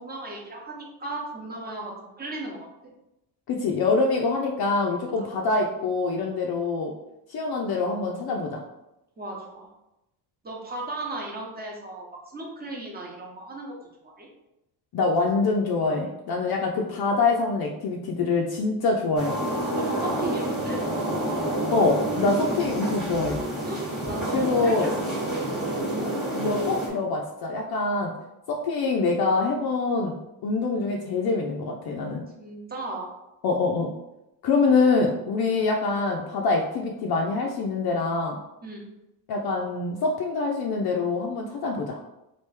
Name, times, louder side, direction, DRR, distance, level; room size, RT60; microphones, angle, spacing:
voice 1, 0.0-2.6 5.2-5.3 9.2-9.7 10.4-13.7 14.0-14.3 19.7-20.8 23.7-25.2 32.4-33.1 38.6-38.9, right 2 dB, 20° right, -1 dB, 0.9 m, -36 dB
voice 2, 3.5-6.9 7.3-8.6 14.9-19.3 21.7-23.4 24.3-24.9 26.3-28.1 28.5-30.2 30.4-32.2 33.4-33.9 34.4-38.4 39.3-42.0, left 3 dB, 55° left, 0 dB, 0.5 m, -25 dB
sound 1, 19.2-26.9, right 1 dB, ahead, 1.2 m, -28 dB
3.1 x 2.6 x 3.3 m, 0.91 s
cardioid pair, 80°, 45 cm